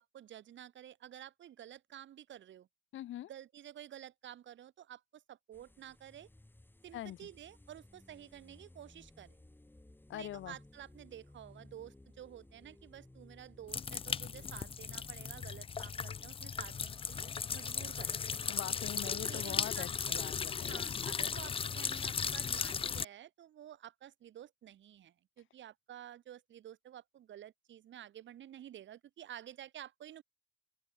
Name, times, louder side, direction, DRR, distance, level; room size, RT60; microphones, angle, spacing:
voice 1, 0.0-2.7 3.3-6.3 6.8-9.4 10.1-18.1 19.0-20.2 20.7-30.2, right 11 dB, 70° right, 3.4 m, -51 dB
voice 2, 2.9-3.3 6.9-7.2 10.1-10.6 18.5-21.1, left 13 dB, 75° left, 2.0 m, -43 dB
sound 1, 5.5-15.7, left 1 dB, 10° left, 6.8 m, -59 dB
sound 2, 13.7-23.0, left 6 dB, 30° left, 0.5 m, -37 dB
open air
cardioid pair, 90°, 20 cm